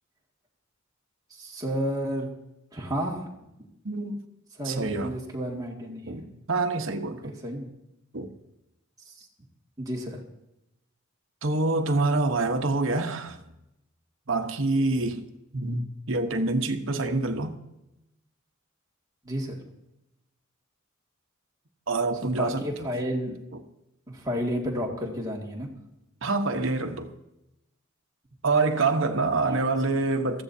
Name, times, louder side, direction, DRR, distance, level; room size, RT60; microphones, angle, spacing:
voice 1, 1.3-2.3 2.7-3.3 4.6-6.2 7.2-7.7 9.1-9.3 9.8-10.2 19.2-19.6 22.4-23.4 24.1-25.7 29.5-29.6, equal, 15° right, 2.2 m, -31 dB
voice 2, 3.8-4.2 4.6-5.1 6.1-7.3 8.1-8.3 11.4-13.4 14.3-15.2 15.5-17.6 21.9-22.9 23.5-23.6 26.2-27.1 28.4-30.4, right 3 dB, 60° right, 1.1 m, -26 dB
20.0 x 14.5 x 2.8 m
head